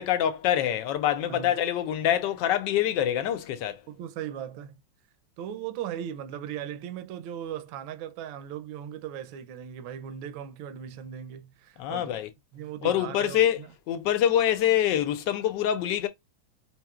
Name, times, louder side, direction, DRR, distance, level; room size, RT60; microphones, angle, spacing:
voice 1, 0.0-3.8 11.8-12.3 12.8-13.6 13.9-16.1, left 11 dB, 75° left, 1.1 m, -25 dB
voice 2, 3.9-4.8 5.4-12.1 12.5-13.7, right 9 dB, 85° right, 1.4 m, -38 dB
4.6 x 2.9 x 2.3 m
omnidirectional pair, 2.1 m